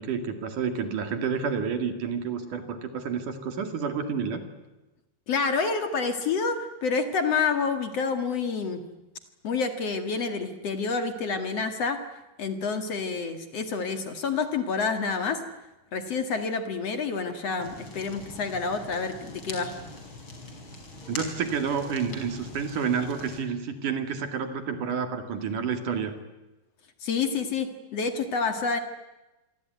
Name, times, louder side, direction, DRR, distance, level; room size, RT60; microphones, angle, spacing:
voice 1, 0.0-4.4 21.1-26.1, right 6 dB, 50° right, 8 dB, 3.4 m, -29 dB
voice 2, 5.3-8.8 9.4-12.0 12.4-15.4 15.9-19.7 27.0-28.8, left 5 dB, 50° left, 8 dB, 2.2 m, -28 dB
Fire, 17.6-23.4, left 2 dB, 30° left, 5.5 m, -42 dB
27.0 x 23.0 x 9.5 m, 1.0 s
omnidirectional pair, 5.1 m